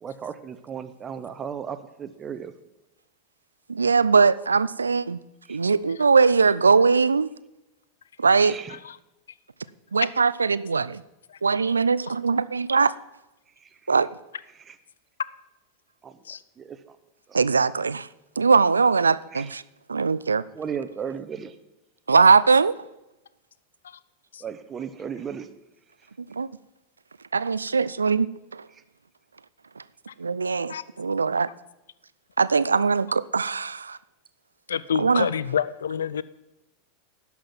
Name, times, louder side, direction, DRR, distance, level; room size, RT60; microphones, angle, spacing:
voice 1, 0.0-2.5 5.5-5.6 8.4-8.8 13.6-13.7 14.7-14.8 16.0-16.2 16.6-17.0 17.3-17.4 19.3-19.5 20.5-21.6 24.4-25.5, right 7 dB, 25° right, 11 dB, 0.9 m, -35 dB
voice 2, 3.7-5.2 5.5-7.3 8.2-8.6 9.9-11.0 11.4-12.9 13.9-14.1 17.3-18.1 18.4-19.6 19.9-20.4 22.1-22.7 26.2-26.5 27.3-28.3 28.5-28.7 30.2-31.5 32.4-34.0 35.0-35.3, right 4 dB, 90° right, 18 dB, 0.4 m, -21 dB
voice 3, 34.7-36.2, left 8 dB, 75° left, 18 dB, 0.3 m, -27 dB
11.5 x 5.9 x 7.3 m, 0.95 s
hypercardioid pair, 90°, 0 cm